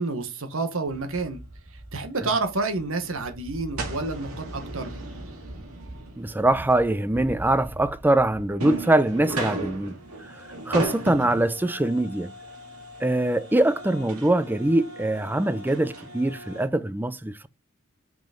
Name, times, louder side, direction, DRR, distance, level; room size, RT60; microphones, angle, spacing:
voice 1, 0.0-1.4 1.9-4.9, right 3 dB, 70° right, 1.5 m, -29 dB
sound 1, 0.9-16.7, right 2 dB, 90° right, 2.2 m, -37 dB
voice 2, 6.2-12.3 13.0-17.5, right 1 dB, 10° right, 0.4 m, -23 dB
5.7 x 5.2 x 5.1 m
head